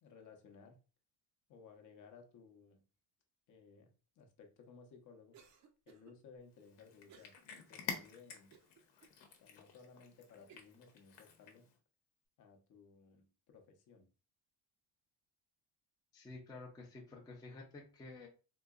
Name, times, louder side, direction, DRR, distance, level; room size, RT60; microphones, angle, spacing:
voice 1, 0.0-0.8 1.5-2.8 3.5-3.9 4.2-5.4 5.9-7.3 7.7-8.5 9.4-11.6 12.4-14.1, left 5 dB, 45° left, 0.7 m, -59 dB
Cough, 5.3-6.1 7.1-7.4 7.9-8.0 8.5-9.2 9.8-9.9 10.5-10.8, right 7 dB, 40° right, 0.5 m, -62 dB
Cat, 6.6-11.8, left 7 dB, 75° left, 0.9 m, -49 dB
voice 2, 16.1-18.3, left 3 dB, 10° left, 0.5 m, -51 dB
3.8 x 2.7 x 2.3 m
cardioid pair, 150°, 43 cm